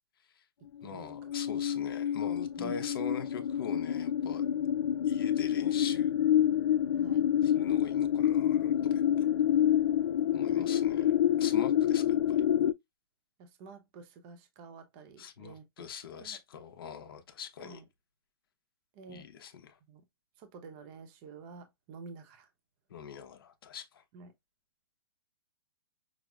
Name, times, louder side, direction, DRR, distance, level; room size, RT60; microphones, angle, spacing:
voice 1, 0.8-4.5 5.0-6.1 7.4-9.3 10.3-12.4 15.2-17.8 19.1-19.8 22.9-24.0, left 7 dB, 60° left, 0.9 m, -43 dB
sound 1, 1.1-12.7, left 10 dB, 80° left, 0.4 m, -28 dB
voice 2, 10.3-10.7 13.4-15.9 16.2-16.4 17.6-17.8 18.9-19.3 19.9-20.0 20.4-22.5 24.1-24.3, right 4 dB, 25° right, 0.8 m, -49 dB
6.0 x 2.1 x 2.4 m
hypercardioid pair, 160°, 14 cm